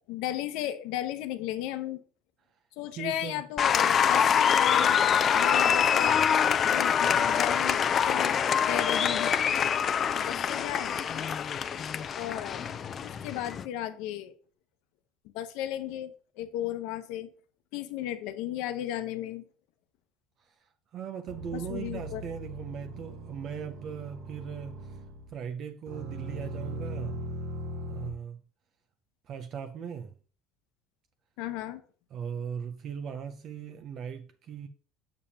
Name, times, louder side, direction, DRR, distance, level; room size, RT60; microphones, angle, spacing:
voice 1, 0.1-2.0 2.8-5.0 5.3-6.2 6.6-8.4 8.7-9.3 10.1-11.0 12.1-12.7 13.0-14.3 15.3-17.3 17.7-19.4 21.5-22.2 31.4-31.8, left 12 dB, 70° left, 0.8 m, -35 dB
voice 2, 3.0-3.4 20.4-25.0 25.3-27.2 27.9-28.4 29.3-30.1 32.1-34.7, right 7 dB, 40° right, 0.5 m, -39 dB
Applause, 3.6-13.6, left 8 dB, 30° left, 0.4 m, -25 dB
sound 1, 21.3-25.4 25.9-28.1, right 1 dB, 70° right, 1.3 m, -39 dB
7.1 x 6.8 x 2.8 m
cardioid pair, 145°, 0 cm